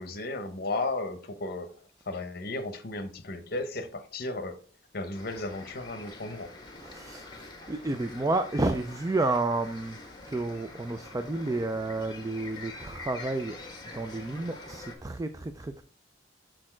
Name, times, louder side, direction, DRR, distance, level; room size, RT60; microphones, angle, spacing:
voice 1, 0.0-1.7 2.1-4.6 4.9-6.5, left 2 dB, 55° left, 0.9 m, -34 dB
sound 1, 5.1-15.0, left 2 dB, 25° left, 1.4 m, -45 dB
voice 2, 6.8-7.3 7.7-13.6 13.9-15.8, right 2 dB, 20° right, 0.4 m, -31 dB
6.3 x 4.3 x 4.4 m
head